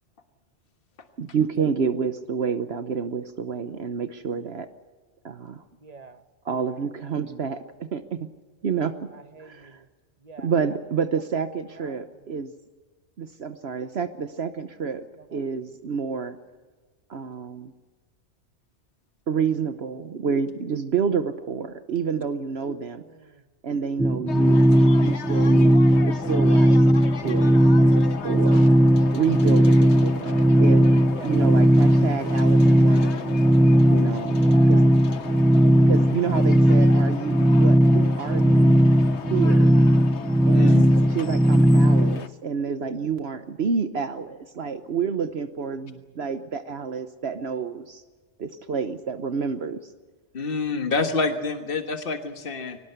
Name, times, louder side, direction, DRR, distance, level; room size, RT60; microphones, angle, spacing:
voice 1, 1.2-4.7 5.2-5.6 6.4-8.3 8.6-9.1 9.4-9.8 10.4-12.5 13.2-15.1 15.3-16.4 17.1-17.7 19.3-23.0 23.6-24.7 25.0-25.7 26.0-28.7 29.1-33.4 33.9-34.4 34.6-34.8 35.8-38.8 39.3-39.7 40.5-48.0 48.4-49.8, right 6 dB, 65° right, 9 dB, 1.2 m, -29 dB
voice 2, 5.8-6.2 6.5-7.2 9.1-9.9 10.2-10.5 11.7-12.1 15.2-15.4 22.9-23.4 31.1-32.0 34.4-35.1 36.2-36.6, right 3 dB, 35° right, 9 dB, 1.3 m, -47 dB
sound 1, 24.0-42.2, equal, ahead, 0.4 m, -17 dB
sound 2, 24.3-42.3, left 6 dB, 75° left, 1.3 m, -37 dB
voice 3, 40.5-40.9 50.3-52.8, left 3 dB, 55° left, 5 dB, 1.7 m, -27 dB
23.5 x 19.0 x 8.0 m, 1.4 s
omnidirectional pair, 1.2 m